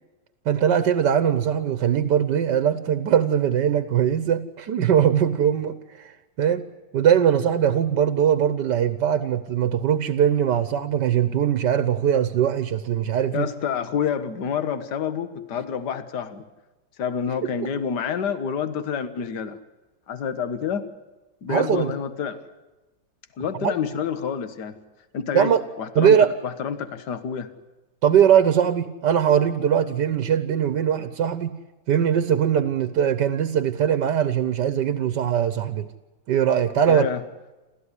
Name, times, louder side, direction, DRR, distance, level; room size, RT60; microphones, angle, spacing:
voice 1, 0.5-6.1 6.4-6.6 6.9-13.5 21.5-21.9 23.6-23.7 25.3-25.6 26.0-26.3 28.0-31.6 31.9-35.9 36.3-37.1, right 9 dB, 70° right, 12 dB, 1.6 m, -21 dB
voice 2, 13.3-16.5 17.0-19.6 20.1-20.9 21.4-22.4 23.4-24.8 25.1-26.2 26.4-27.5 36.9-37.2, left 7 dB, 65° left, 11 dB, 1.9 m, -28 dB
29.0 x 14.0 x 9.8 m, 1.1 s
omnidirectional pair, 2.0 m